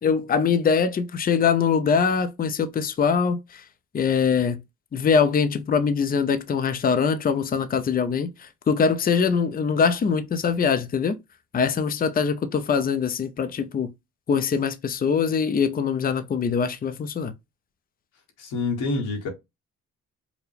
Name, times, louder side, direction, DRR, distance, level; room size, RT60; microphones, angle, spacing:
voice 1, 0.0-3.6 3.9-4.6 4.9-11.2 11.5-13.9 14.3-17.3, left 6 dB, 30° left, 0.5 m, -23 dB
voice 2, 18.4-19.3, left 3 dB, 85° left, 1.3 m, -27 dB
4.7 x 2.2 x 3.3 m
cardioid pair, 90°, 30 cm